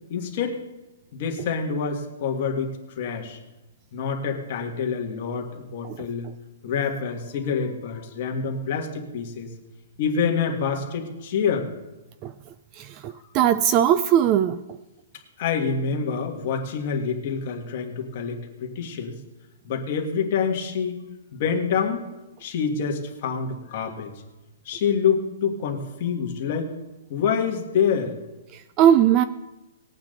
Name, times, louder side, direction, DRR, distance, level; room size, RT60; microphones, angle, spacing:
voice 1, 0.1-0.6 1.1-2.7 3.0-3.4 3.9-6.3 6.6-9.5 10.0-11.7 15.4-19.2 19.6-21.0 21.3-22.1 22.4-24.1 24.7-26.7 27.1-28.2, left 6 dB, 30° left, 1.8 m, -26 dB
voice 2, 12.8-14.6 28.8-29.2, right 10 dB, 20° right, 0.3 m, -19 dB
19.5 x 8.8 x 3.9 m
hypercardioid pair, 175°, 0 cm